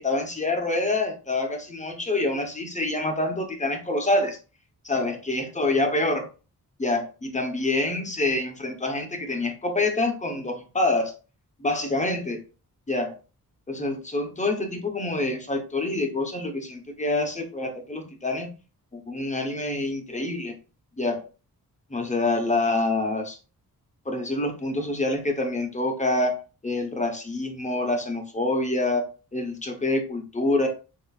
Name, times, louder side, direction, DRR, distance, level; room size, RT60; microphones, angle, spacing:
voice 1, 0.0-4.4 4.8-6.3 6.8-11.1 11.6-12.4 12.9-13.2 13.7-18.5 18.9-20.5 21.0-21.2 21.9-23.4 24.0-26.4 26.6-30.7, left 2 dB, 20° left, 4 dB, 1.0 m, -26 dB
6.9 x 2.9 x 2.4 m, 0.33 s
wide cardioid pair, 135°, 35 cm